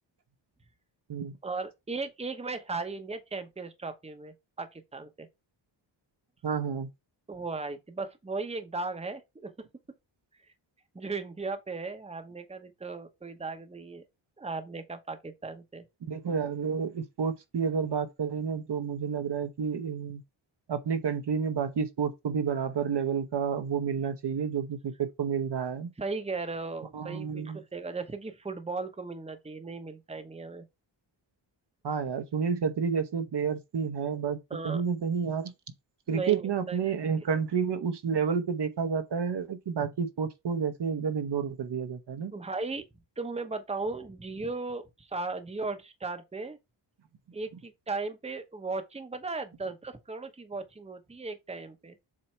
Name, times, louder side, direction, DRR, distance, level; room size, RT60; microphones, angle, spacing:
voice 1, 1.4-5.3 7.3-9.5 10.9-14.0 14.4-15.8 26.0-30.6 34.5-34.8 36.1-36.8 42.3-42.8 43.2-46.6 47.3-52.0, right 3 dB, 15° right, 0.9 m, -36 dB
voice 2, 6.4-6.9 16.0-20.2 20.7-25.9 26.9-27.6 31.8-34.4 34.6-35.5 36.1-42.3, right 6 dB, 60° right, 1.0 m, -30 dB
7.5 x 2.8 x 4.5 m
cardioid pair, 90°, 47 cm